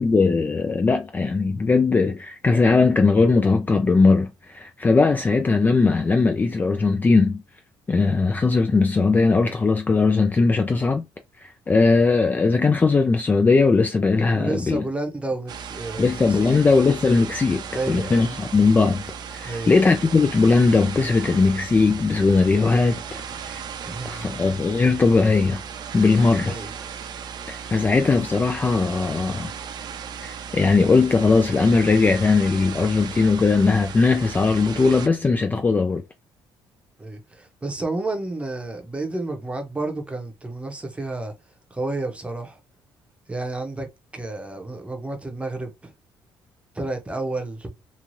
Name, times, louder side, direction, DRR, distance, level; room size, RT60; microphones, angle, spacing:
voice 1, 0.0-7.4 7.9-11.0 11.4-14.8 16.0-19.0 19.3-23.6 24.0-25.6 25.9-26.6 27.5-29.5 30.2-36.0, left 4 dB, 20° left, 0.3 m, -19 dB
voice 2, 14.3-16.6 17.7-18.3 19.4-19.8 23.8-24.3 26.5-26.7 37.0-41.3 41.7-42.6 43.3-43.9 44.1-45.9 46.7-47.7, right 2 dB, 15° right, 0.8 m, -30 dB
sound 1, 15.5-35.1, right 7 dB, 50° right, 0.5 m, -36 dB
3.1 x 2.3 x 2.6 m
cardioid pair, 120°, 9 cm